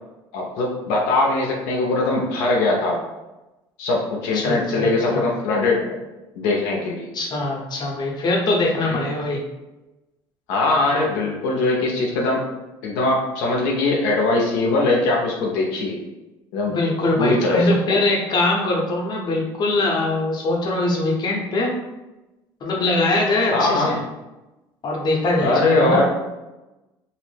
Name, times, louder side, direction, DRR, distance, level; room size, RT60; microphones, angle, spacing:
voice 1, 0.3-3.0 3.8-5.9 6.4-7.1 8.8-9.0 10.5-12.4 12.8-16.0 16.5-16.8 17.2-17.7 23.5-23.9 25.4-26.0, left 2 dB, 80° left, -2 dB, 0.5 m, -21 dB
voice 2, 4.3-5.3 7.1-9.4 16.7-21.7 22.6-24.0 24.8-26.0, left 2 dB, 40° left, -1 dB, 0.7 m, -22 dB
2.5 x 2.0 x 3.2 m, 1.0 s
supercardioid pair, 90°, 11 cm